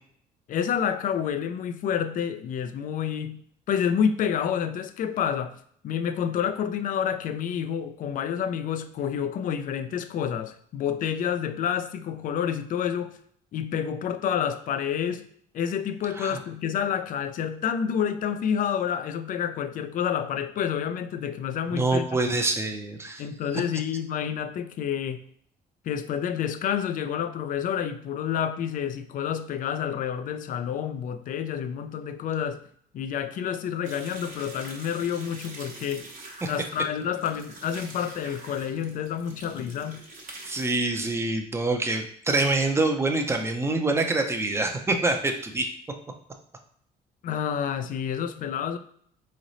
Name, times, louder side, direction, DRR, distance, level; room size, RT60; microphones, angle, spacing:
voice 1, 0.5-5.6 5.8-13.2 13.5-15.3 15.5-22.4 23.2-25.2 25.9-32.7 32.9-36.1 36.5-40.0 47.2-48.8, left 8 dB, 50° left, 0.5 m, -29 dB
voice 2, 21.7-23.2 40.4-45.7, right 2 dB, 15° right, 0.7 m, -25 dB
sound 1, 33.8-40.7, right 2 dB, 50° right, 1.1 m, -45 dB
3.8 x 3.2 x 4.0 m
cardioid pair, 110°, 17 cm